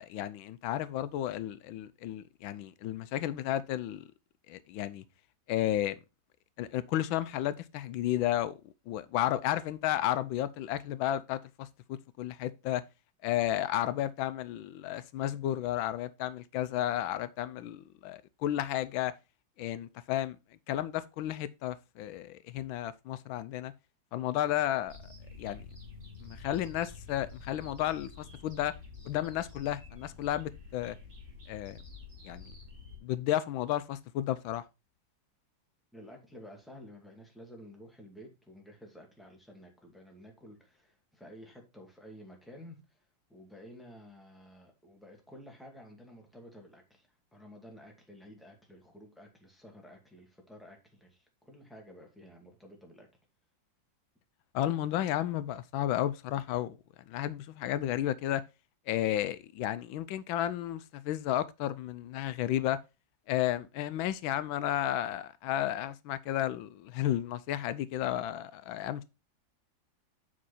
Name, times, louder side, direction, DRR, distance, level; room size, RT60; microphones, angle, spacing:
voice 1, 0.0-4.1 4.5-5.0 5.5-6.0 6.6-8.6 8.9-12.8 13.2-19.1 19.6-20.4 20.7-23.7 24.1-25.0 25.4-25.6 26.2-28.7 29.0-31.0 31.5-31.8 32.2-32.5 33.0-34.6 54.5-56.8 57.1-58.4 58.9-62.8 63.3-69.0, left 12 dB, 90° left, 1.4 m, -32 dB
sound 1, 24.9-33.0, left 4 dB, 35° right, 2.7 m, -48 dB
voice 2, 35.9-43.0 43.3-53.1, equal, ahead, 2.1 m, -52 dB
7.7 x 5.5 x 4.1 m
omnidirectional pair, 2.1 m